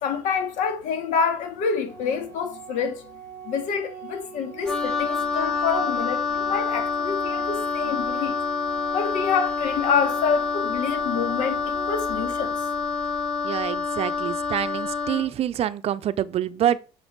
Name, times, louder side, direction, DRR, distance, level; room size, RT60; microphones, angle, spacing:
voice 1, 0.0-3.1 3.5-8.4 8.9-12.6, left 6 dB, 70° left, 2.0 m, -27 dB
Organ, 1.9-12.9, right 7 dB, 20° left, 2.1 m, -43 dB
Wind instrument woodwind instrument, 4.7-15.3, left 4 dB, 5° left, 1.8 m, -27 dB
voice 2, 13.4-16.8, right 11 dB, 50° right, 0.6 m, -26 dB
6.6 x 6.4 x 4.6 m
supercardioid pair, 90°, 13 cm